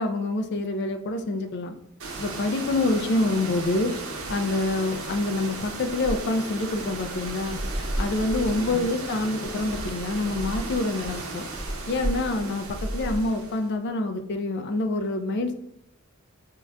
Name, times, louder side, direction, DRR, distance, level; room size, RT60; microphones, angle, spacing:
voice 1, 0.0-1.7 2.2-3.9 4.3-7.6 8.0-11.5 11.9-15.5, left 2 dB, 50° left, 7 dB, 0.4 m, -26 dB
sound 1, 2.0-13.7, right 2 dB, 75° right, 0.7 m, -33 dB
5.4 x 2.2 x 2.4 m, 0.78 s
head